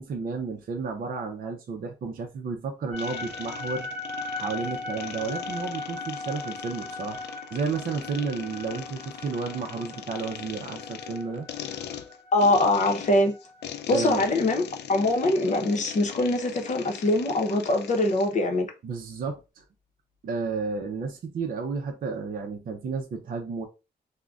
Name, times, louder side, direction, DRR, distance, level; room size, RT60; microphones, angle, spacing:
voice 1, 0.0-3.9 4.4-7.2 7.5-11.5 13.9-14.2 18.8-19.6 20.2-23.7, right 4 dB, 55° right, 0.5 m, -32 dB
sound 1, 2.9-15.1, left 2 dB, 10° left, 1.2 m, -39 dB
sound 2, 3.0-18.4, left 9 dB, 75° left, 0.4 m, -41 dB
voice 2, 12.3-13.4 13.9-14.6 14.9-18.7, left 2 dB, 45° left, 0.7 m, -23 dB
3.6 x 2.1 x 2.3 m
wide cardioid pair, 130°, 18 cm